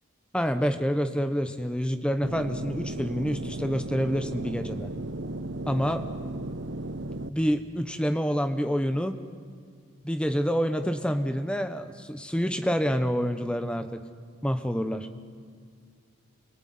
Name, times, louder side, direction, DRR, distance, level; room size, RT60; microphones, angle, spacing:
voice 1, 0.3-4.9 5.7-6.0 7.2-9.2 10.0-14.0 14.4-15.1, equal, 5° left, 8 dB, 1.1 m, -27 dB
sound 1, 2.2-7.3, right 1 dB, 60° right, 0.9 m, -35 dB
27.0 x 19.5 x 9.6 m, 2.1 s
head